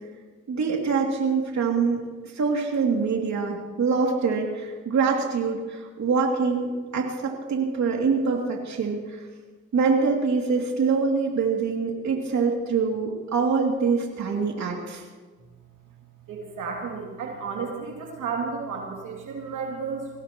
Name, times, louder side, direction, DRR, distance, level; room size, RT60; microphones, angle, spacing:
voice 1, 0.5-2.0 2.3-9.2 9.7-15.0, right 5 dB, 65° right, 0 dB, 2.7 m, -24 dB
voice 2, 16.3-20.1, right 5 dB, 90° right, -1 dB, 2.7 m, -32 dB
22.5 x 17.5 x 3.0 m, 1.4 s
cardioid pair, 70°, 30 cm